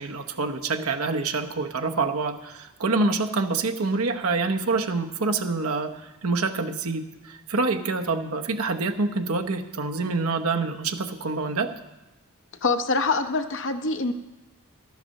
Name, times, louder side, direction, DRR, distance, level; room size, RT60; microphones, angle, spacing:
voice 1, 0.0-11.7, right 3 dB, 90° right, 5 dB, 0.9 m, -26 dB
voice 2, 12.6-14.1, left 3 dB, 60° left, 6 dB, 0.8 m, -24 dB
12.0 x 8.2 x 6.5 m, 1.0 s
head